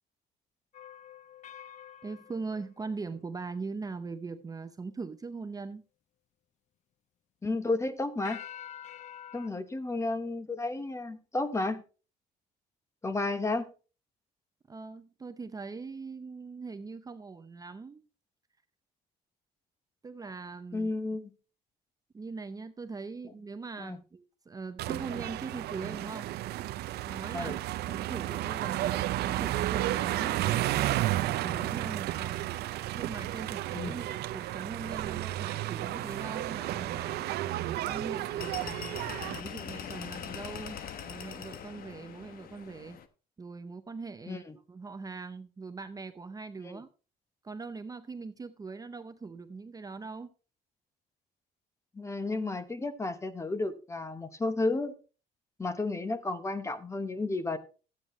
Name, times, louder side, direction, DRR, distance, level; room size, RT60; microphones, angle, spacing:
sound 1, 0.7-3.6 8.2-9.5, left 10 dB, 45° left, 0.5 m, -47 dB
voice 1, 2.0-5.9 14.7-18.1 20.0-20.9 22.1-26.3 27.0-31.1 31.4-32.5 32.9-37.2 37.6-39.0 39.3-43.0 43.4-46.9 47.4-50.3, right 4 dB, 20° right, 0.6 m, -41 dB
voice 2, 7.4-8.4 9.3-11.8 13.0-13.7 20.7-21.3 23.8-24.0 27.3-27.6 33.8-34.0 44.3-44.5 46.6-46.8 51.9-55.0 55.6-57.6, left 2 dB, 15° left, 1.0 m, -32 dB
sound 2, 24.8-39.4, right 15 dB, 75° right, 0.6 m, -32 dB
sound 3, 35.8-43.1, left 8 dB, 60° left, 1.1 m, -44 dB
12.5 x 8.7 x 3.1 m
cardioid pair, 110°, 17 cm